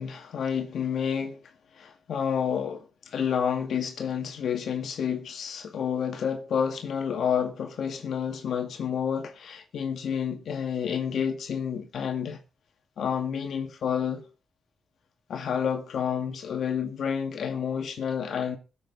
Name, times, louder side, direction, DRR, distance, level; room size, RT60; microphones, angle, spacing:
voice 1, 0.0-1.4 1.7-12.4 13.0-14.2 15.3-18.6, left 7 dB, 70° left, 2.1 m, -29 dB
21.5 x 7.8 x 3.9 m
cardioid pair, 110°, 0 cm